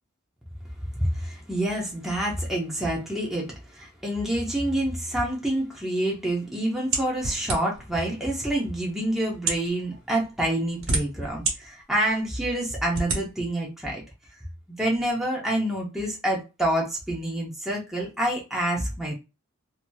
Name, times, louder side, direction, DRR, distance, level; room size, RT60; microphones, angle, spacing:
voice 1, 1.0-14.0 14.7-19.1, right 1 dB, ahead, 0.8 m, -27 dB
sound 1, 6.9-7.9 8.7-8.8 9.3-9.7 10.5-11.5 12.1-12.2 12.9-13.2, right 3 dB, 65° right, 1.3 m, -27 dB
2.8 x 2.7 x 2.3 m
head